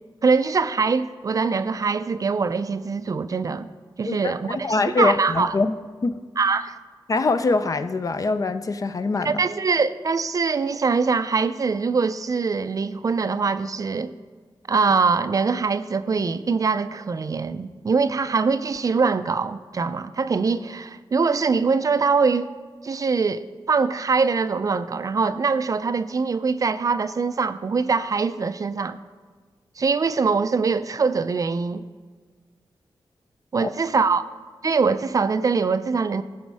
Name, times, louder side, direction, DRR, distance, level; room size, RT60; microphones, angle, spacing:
voice 1, 0.2-3.7 4.0-5.6 6.4-6.8 9.2-14.1 14.7-22.5 22.8-29.0 29.8-31.8 33.5-34.2 34.6-36.2, right 4 dB, 40° right, 0.4 m, -23 dB
voice 2, 4.1-5.7 6.0-6.1 7.1-9.4 33.6-33.7, left 3 dB, 40° left, 0.5 m, -23 dB
14.0 x 6.4 x 4.7 m
wide cardioid pair, 125°, 9 cm